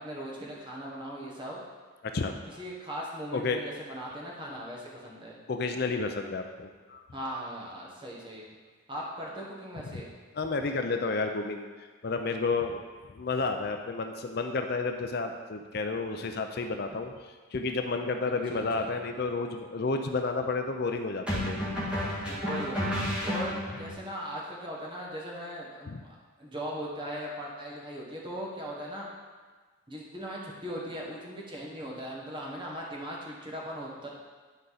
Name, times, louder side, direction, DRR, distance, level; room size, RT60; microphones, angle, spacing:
voice 1, 0.0-1.6 2.6-5.4 7.1-8.4 8.9-10.1 18.5-18.9 22.2-22.9 23.2-29.1 29.9-34.1, equal, 25° right, -4 dB, 1.4 m, -39 dB
voice 2, 2.0-2.6 3.3-3.6 5.5-7.0 9.9-10.0 10.3-12.8 13.1-17.1 17.5-21.7 25.9-26.0, left 3 dB, 50° left, 5 dB, 0.5 m, -31 dB
sound 1, 18.6-18.8 21.3-23.9, equal, 5° right, 1.8 m, -31 dB
10.0 x 5.1 x 4.1 m, 1.4 s
head